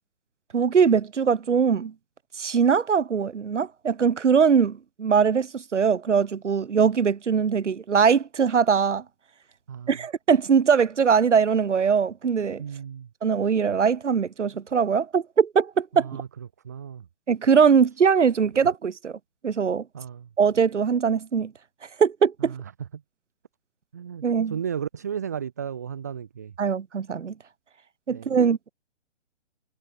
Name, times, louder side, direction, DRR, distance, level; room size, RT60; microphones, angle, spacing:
voice 1, 0.5-1.9 2.4-9.0 9.9-12.6 13.2-16.1 17.3-19.1 19.4-19.8 20.4-21.5 22.0-22.5 24.2-24.6 26.6-27.3 28.1-28.7, right 6 dB, 85° right, 0.6 m, -21 dB
voice 2, 9.7-10.0 12.6-13.1 15.9-16.3 16.6-17.0 19.9-20.3 22.4-22.6 23.9-26.5 28.1-28.4, right 8 dB, 15° right, 0.5 m, -34 dB
figure-of-eight pair, 135°, 35 cm